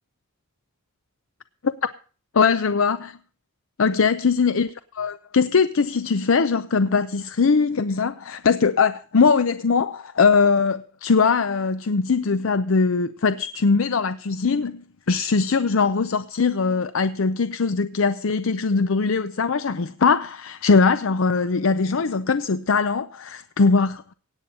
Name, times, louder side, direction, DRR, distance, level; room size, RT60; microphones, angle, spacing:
voice 1, 2.3-3.2 3.8-24.0, left 5 dB, 75° left, 0.6 m, -21 dB
17.0 x 8.6 x 5.4 m
head